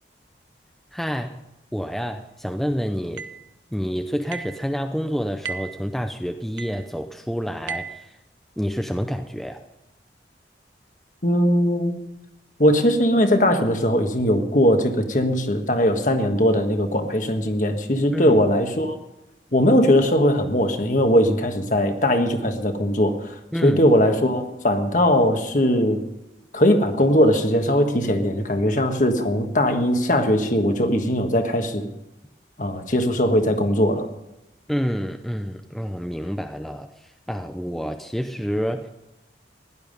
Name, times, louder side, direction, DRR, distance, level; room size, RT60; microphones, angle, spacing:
voice 1, 0.9-1.4 1.7-3.2 3.7-8.2 8.6-9.6 18.1-18.4 23.5-23.8 34.7-38.9, equal, ahead, 5 dB, 0.6 m, -28 dB
sound 1, 3.2-3.4 4.3-4.6 5.4-5.8 6.6-6.9 7.7-8.0, right 6 dB, 90° right, 0.9 m, -34 dB
voice 2, 11.2-12.0 12.6-18.9 19.5-26.0 26.5-31.9 32.6-34.1, equal, 45° left, 6 dB, 1.5 m, -20 dB
15.5 x 11.5 x 5.3 m, 0.91 s
head